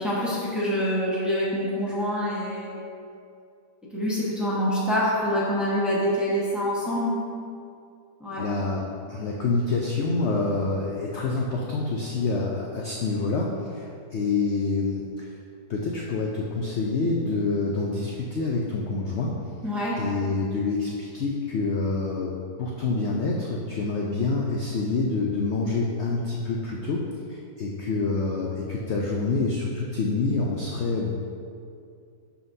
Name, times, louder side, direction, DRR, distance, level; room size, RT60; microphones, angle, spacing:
voice 1, 0.0-2.7 3.9-7.1 8.2-8.4 19.6-20.0, equal, ahead, -8 dB, 1.0 m, -26 dB
voice 2, 8.3-15.3 15.7-19.4 20.0-27.0 27.3-31.1, left 3 dB, 85° left, -1 dB, 0.6 m, -27 dB
10.0 x 3.8 x 2.7 m, 2.4 s
omnidirectional pair, 1.8 m